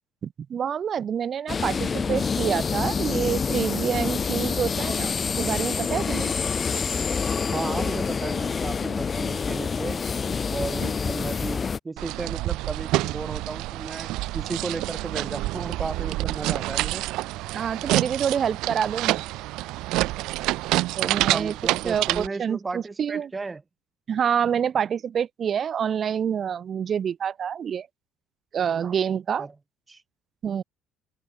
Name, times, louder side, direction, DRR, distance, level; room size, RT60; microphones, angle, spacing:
voice 1, 0.2-6.3 10.8-10.9 17.5-19.2 21.0-21.5 21.9-23.3 24.1-27.9 28.5-29.5 30.4-30.6, right 8 dB, 45° right, 0.4 m, -27 dB
sound 1, 1.5-11.8, left 5 dB, 35° left, 0.8 m, -27 dB
voice 2, 7.5-10.0 10.5-17.0 21.0-23.6 29.4-29.5 29.9-30.0, right 3 dB, 25° right, 0.8 m, -34 dB
sound 2, 12.0-22.3, right 18 dB, 75° right, 0.8 m, -27 dB
supercardioid pair, 80°, 0 cm